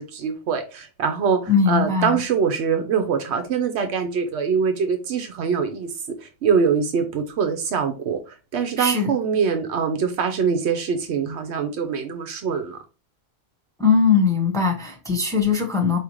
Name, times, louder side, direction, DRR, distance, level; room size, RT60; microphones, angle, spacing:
voice 1, 0.0-5.9 6.2-12.8, right 6 dB, 90° right, 6 dB, 1.0 m, -23 dB
voice 2, 1.5-2.2 8.8-9.1 13.8-16.0, left 5 dB, 5° left, 2 dB, 0.8 m, -20 dB
5.0 x 2.9 x 3.0 m, 0.31 s
omnidirectional pair, 1.1 m